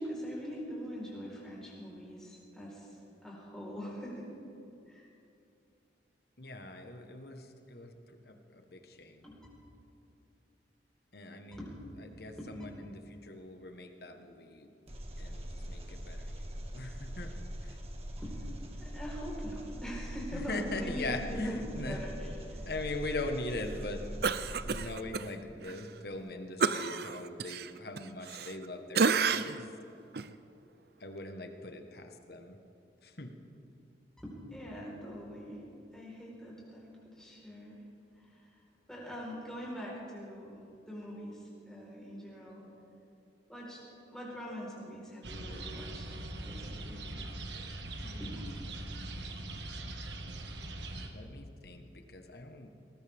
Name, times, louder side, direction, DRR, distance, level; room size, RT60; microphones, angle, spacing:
voice 1, 0.0-4.3 4.9-5.1 9.2-9.4 11.6-11.8 12.4-12.6 18.2-18.4 18.8-22.6 34.2-35.6 35.9-37.8 38.2-38.4 38.9-40.6 40.9-42.7 43.5-43.8 44.1-46.1 46.4-47.1 48.2-48.3, equal, 5° left, -5 dB, 4.4 m, -43 dB
voice 2, 6.4-9.3 11.1-11.7 12.0-14.7 15.2-17.3 17.6-17.8 20.3-22.0 22.6-24.1 24.5-29.5 31.0-32.6 33.0-33.3 48.0-48.4 51.1-52.7, left 2 dB, 60° left, 5 dB, 1.4 m, -41 dB
Engine, 14.9-24.9, equal, 35° right, 1.6 m, -42 dB
Cough, 24.2-25.3 25.6-25.8 26.6-28.7 28.9-29.7 30.1-30.3, right 5 dB, 60° right, 0.5 m, -30 dB
sound 1, 45.2-51.1, right 2 dB, 75° right, 1.5 m, -41 dB
20.0 x 19.5 x 3.6 m, 2.8 s
head